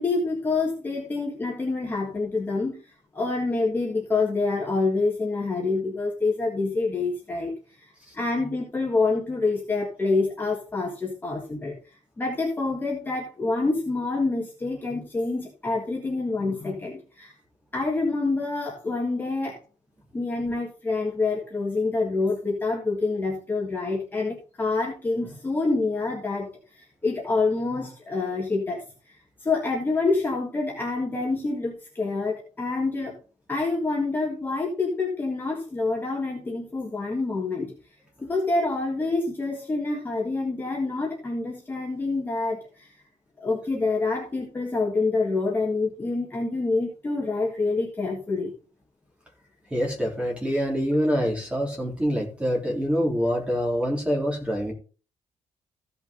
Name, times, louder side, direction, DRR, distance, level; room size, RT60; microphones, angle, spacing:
voice 1, 0.0-2.8 3.1-7.5 8.1-11.8 12.2-17.3 17.7-19.6 20.1-26.5 26.8-29.1 29.4-33.1 33.5-37.7 38.2-42.9 43.4-48.5, left 3 dB, 15° left, -2 dB, 1.7 m, -27 dB
voice 2, 49.7-54.7, equal, 10° right, -1 dB, 3.7 m, -25 dB
15.0 x 5.8 x 3.9 m, 0.35 s
cardioid pair, 180°, 12 cm